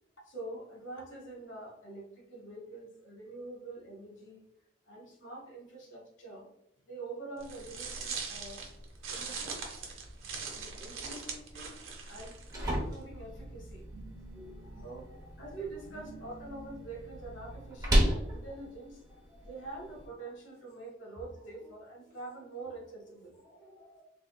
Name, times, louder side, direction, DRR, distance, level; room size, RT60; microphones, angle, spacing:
voice 1, 0.2-4.4 4.9-6.5 6.9-8.6 9.1-9.6 10.5-12.4 12.7-13.9 14.8-19.0 19.4-23.4, right 2 dB, 70° left, -1 dB, 1.2 m, -45 dB
sound 1, 7.4-13.0, right 5 dB, 90° right, 0.9 m, -41 dB
sound 2, 12.1-20.1, equal, 20° right, 0.8 m, -34 dB
voice 2, 13.9-15.5 15.9-16.8 19.3-19.5 23.4-24.0, right 2 dB, 20° left, -4 dB, 1.1 m, -53 dB
3.5 x 3.4 x 2.3 m, 0.80 s
head